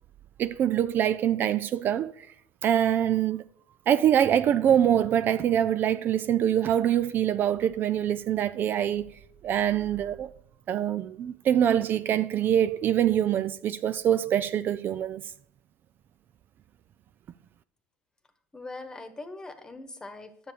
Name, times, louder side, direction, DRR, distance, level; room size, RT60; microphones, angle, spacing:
voice 1, 0.4-2.3 2.6-3.4 3.9-9.1 9.4-10.3 10.7-15.2, right 10 dB, 45° right, 0.4 m, -24 dB
voice 2, 18.5-20.5, left 2 dB, 15° left, 1.2 m, -41 dB
10.0 x 6.9 x 5.0 m
supercardioid pair, 110°, 5 cm